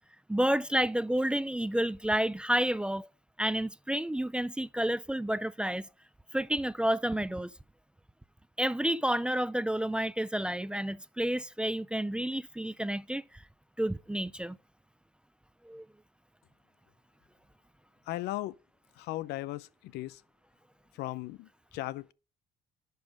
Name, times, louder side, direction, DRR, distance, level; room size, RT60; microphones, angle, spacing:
voice 1, 0.3-3.1 3.4-5.9 6.3-7.5 8.6-13.4 13.8-14.6 15.6-15.9, right 1 dB, 5° right, 0.3 m, -30 dB
voice 2, 18.1-18.6 19.0-20.2 20.9-22.1, left 16 dB, 80° left, 0.5 m, -37 dB
11.0 x 5.5 x 5.1 m
cardioid pair, 110°, 17 cm